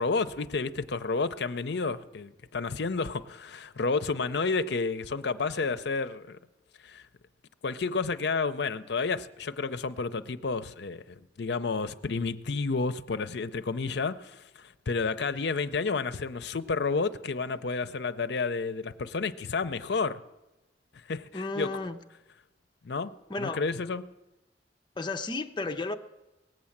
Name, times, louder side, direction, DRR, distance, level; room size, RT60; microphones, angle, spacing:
voice 1, 0.0-6.4 6.8-7.0 7.6-20.2 20.9-21.3 21.6-21.7 22.8-24.0, left 4 dB, 65° left, 0.6 m, -31 dB
voice 2, 21.3-22.0 23.3-23.6 25.0-25.9, left 3 dB, 25° left, 0.7 m, -33 dB
18.5 x 7.6 x 7.2 m
head